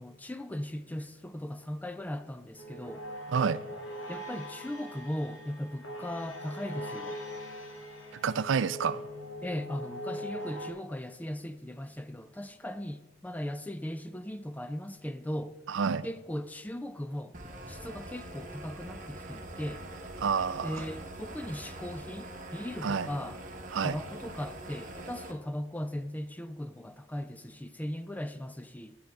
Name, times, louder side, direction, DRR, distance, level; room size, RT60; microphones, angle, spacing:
voice 1, 0.0-3.1 4.1-7.2 9.4-15.6 16.0-17.4 17.7-19.9 20.6-23.4 23.8-29.0, left 1 dB, 10° left, 0.3 m, -38 dB
sound 1, 2.6-10.7, equal, 90° left, 1.7 m, -41 dB
voice 2, 3.3-3.6 8.2-9.1 15.7-16.1 20.2-20.9 22.8-23.1 23.7-24.0, right 6 dB, 75° right, 0.4 m, -29 dB
sound 2, 17.3-25.3, right 1 dB, 40° right, 1.1 m, -44 dB
10.5 x 7.8 x 4.7 m
head